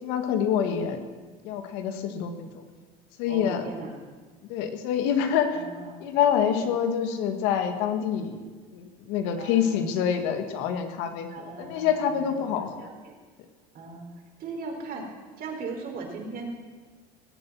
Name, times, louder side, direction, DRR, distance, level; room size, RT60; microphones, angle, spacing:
voice 1, 0.0-1.0 1.4-2.6 3.2-3.7 4.5-5.6 6.0-8.4 8.7-11.3 11.6-12.9, left 8 dB, 75° left, 7 dB, 1.9 m, -26 dB
voice 2, 0.6-0.9 3.2-4.0 5.5-6.0 6.6-6.7 8.1-8.3 9.4-9.9 11.3-13.2 13.7-15.1 15.4-16.5, right 3 dB, 50° right, 1 dB, 4.4 m, -39 dB
19.5 x 8.3 x 7.5 m, 1.4 s
supercardioid pair, 95°, 19 cm